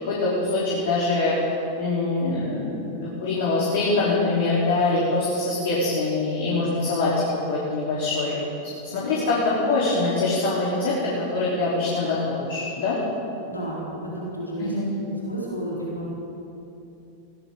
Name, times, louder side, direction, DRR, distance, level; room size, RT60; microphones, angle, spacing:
voice 1, 0.1-1.3 1.8-7.1 7.5-8.4 8.9-13.0 14.6-14.9, left 3 dB, 55° left, -6 dB, 3.4 m, -24 dB
voice 2, 13.5-14.7 15.2-16.1, right 1 dB, 80° left, -5 dB, 3.5 m, -32 dB
21.5 x 17.0 x 3.8 m, 2.8 s
figure-of-eight pair, 90°, 0 cm